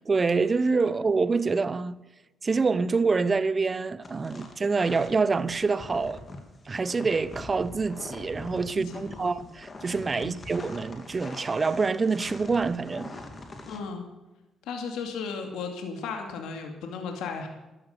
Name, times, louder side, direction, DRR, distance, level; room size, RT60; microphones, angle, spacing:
voice 1, 0.1-2.0 2.4-6.2 6.7-13.1, right 4 dB, 30° right, 0.8 m, -26 dB
sound 1, 4.0-13.8, left 2 dB, 35° left, 3.0 m, -43 dB
voice 2, 8.8-9.4 10.2-10.3 13.7-14.1 14.7-17.5, left 5 dB, 90° left, 2.5 m, -35 dB
14.0 x 12.0 x 6.8 m
cardioid pair, 90°, 0 cm